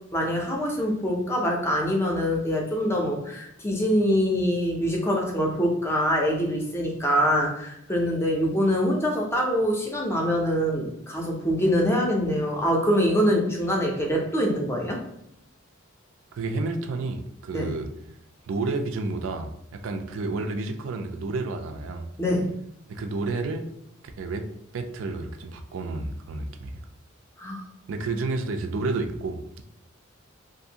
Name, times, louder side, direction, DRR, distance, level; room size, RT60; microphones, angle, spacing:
voice 1, 0.1-15.0 17.5-17.7 22.2-22.5 27.4-27.6, equal, 15° left, 0 dB, 0.5 m, -24 dB
voice 2, 16.3-17.9 18.5-22.1 22.9-23.6 24.2-24.4 24.7-26.8 27.9-29.6, right 3 dB, 75° right, 5 dB, 0.4 m, -30 dB
2.6 x 2.5 x 2.8 m, 0.76 s
head